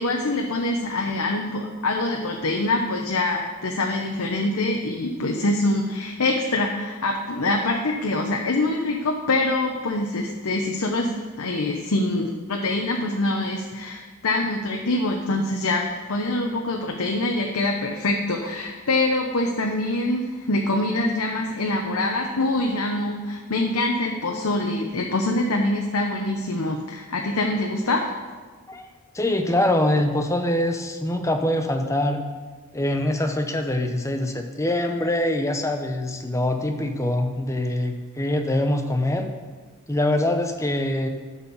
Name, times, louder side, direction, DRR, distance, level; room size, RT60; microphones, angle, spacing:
voice 1, 0.0-28.0, left 2 dB, 75° left, 2 dB, 0.8 m, -25 dB
voice 2, 29.1-32.2 32.7-39.3 39.9-41.1, left 1 dB, 15° left, 5 dB, 0.7 m, -24 dB
11.5 x 4.4 x 7.0 m, 1.4 s
head